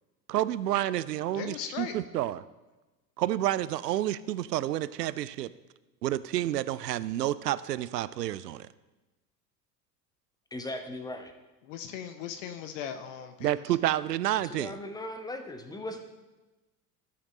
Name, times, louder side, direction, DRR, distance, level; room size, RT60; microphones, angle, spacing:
voice 1, 0.3-2.4 3.2-5.5 6.0-8.7 13.4-14.8, right 13 dB, 75° right, 17 dB, 0.5 m, -29 dB
voice 2, 1.3-2.0 11.7-13.5, left 8 dB, 50° left, 9 dB, 0.8 m, -38 dB
voice 3, 10.5-11.3 14.4-16.0, left 1 dB, 10° left, 6 dB, 1.0 m, -38 dB
16.0 x 5.9 x 3.1 m, 1.1 s
figure-of-eight pair, 75°, 49 cm